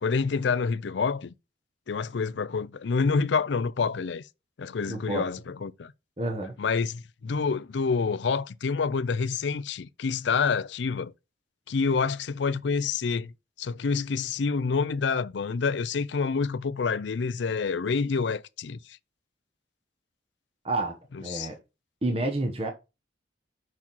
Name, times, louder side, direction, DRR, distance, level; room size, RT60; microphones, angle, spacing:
voice 1, 0.0-1.3 1.9-4.2 4.6-5.9 6.6-11.1 11.7-13.3 13.6-18.8 21.3-21.5, left 5 dB, 75° left, 0.5 m, -27 dB
voice 2, 4.9-5.3 6.2-6.6 20.6-21.6 22.0-22.7, right 2 dB, 30° right, 1.0 m, -29 dB
6.0 x 4.7 x 5.4 m
head